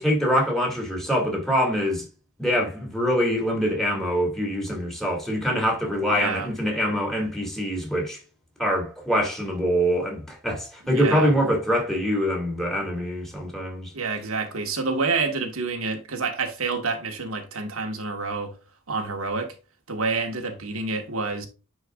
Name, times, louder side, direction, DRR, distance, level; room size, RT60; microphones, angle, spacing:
voice 1, 0.0-2.1 2.4-8.2 8.6-13.9, equal, ahead, 2.3 m, -24 dB
voice 2, 6.1-6.5 10.8-11.3 13.9-18.5 18.9-19.5 19.9-21.5, right 4 dB, 75° right, 1.5 m, -28 dB
9.9 x 4.5 x 2.4 m
head